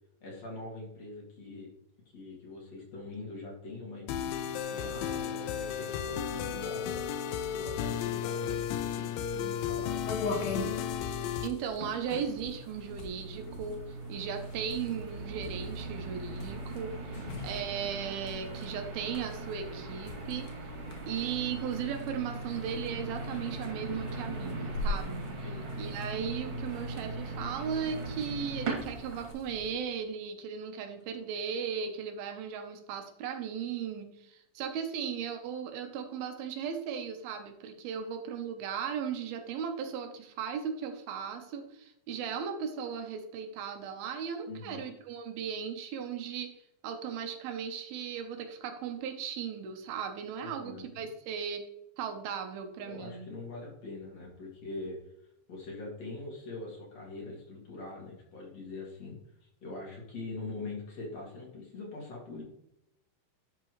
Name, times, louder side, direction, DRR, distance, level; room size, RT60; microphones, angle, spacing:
voice 1, 0.2-1.7 2.1-7.0 7.4-10.0 10.3-10.8 17.1-17.3 25.4-25.6 44.5-44.8 50.4-50.9 52.8-55.0 55.5-62.4, left 3 dB, 50° left, -2 dB, 3.2 m, -43 dB
sound 1, 4.1-11.5, left 8 dB, 80° left, 2.4 m, -34 dB
sound 2, 10.1-29.7, left 2 dB, 65° left, 2.9 m, -43 dB
voice 2, 11.4-17.0 17.4-20.5 21.1-25.3 25.8-51.7 52.0-53.3, right 7 dB, 85° right, 6 dB, 2.9 m, -37 dB
sound 3, 11.8-29.3, right 2 dB, 45° right, 2.9 m, -40 dB
11.5 x 6.1 x 3.1 m, 0.81 s
omnidirectional pair, 4.2 m